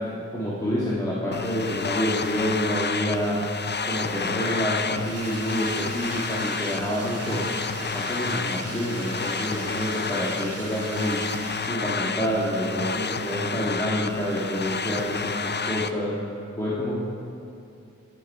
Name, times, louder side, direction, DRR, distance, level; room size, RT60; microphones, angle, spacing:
voice 1, 0.3-3.4 3.9-7.4 7.8-11.2 11.7-16.1 16.6-17.0, equal, 10° left, -9 dB, 1.6 m, -27 dB
sound 1, 1.3-15.9, left 5 dB, 35° left, 0.4 m, -31 dB
Bathtub (filling or washing), 4.7-12.0, right 2 dB, 50° right, 1.1 m, -39 dB
13.5 x 5.4 x 4.5 m, 2.6 s
wide cardioid pair, 50°, 32 cm